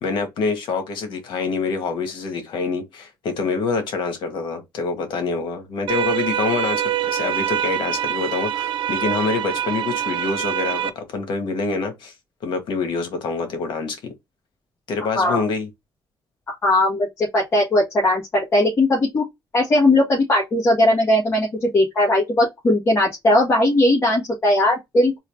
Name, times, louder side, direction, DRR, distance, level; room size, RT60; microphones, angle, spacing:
voice 1, 0.0-12.1 12.4-14.1 14.9-15.7, left 4 dB, 80° left, 1.5 m, -26 dB
sound 1, 5.9-10.9, right 10 dB, 80° right, 0.5 m, -25 dB
voice 2, 16.5-19.2 19.5-25.2, left 1 dB, 30° left, 1.6 m, -18 dB
3.8 x 2.7 x 3.3 m
cardioid pair, 160°, 8 cm